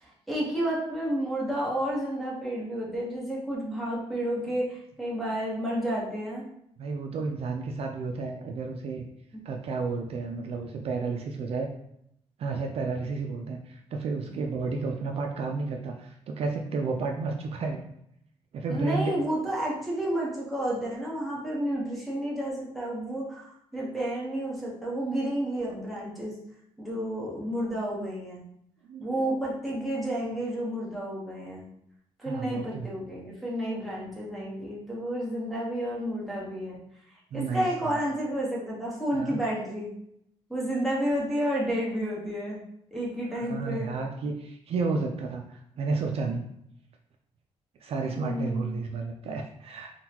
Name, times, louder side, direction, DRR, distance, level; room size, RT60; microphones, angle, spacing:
voice 1, 0.0-6.4 9.3-9.4 14.2-14.3 18.7-26.3 26.8-28.4 29.0-31.7 32.2-36.8 37.3-39.9 40.5-42.6 42.9-43.9 48.2-48.8, right 1 dB, ahead, -6 dB, 1.0 m, -31 dB
voice 2, 6.8-9.1 9.4-11.7 12.4-17.8 18.5-19.1 28.9-29.3 32.2-32.9 37.3-38.0 39.1-39.4 43.3-46.5 47.8-49.9, right 4 dB, 55° right, 2 dB, 0.4 m, -32 dB
3.6 x 2.2 x 2.9 m, 0.74 s
cardioid pair, 125°, 12 cm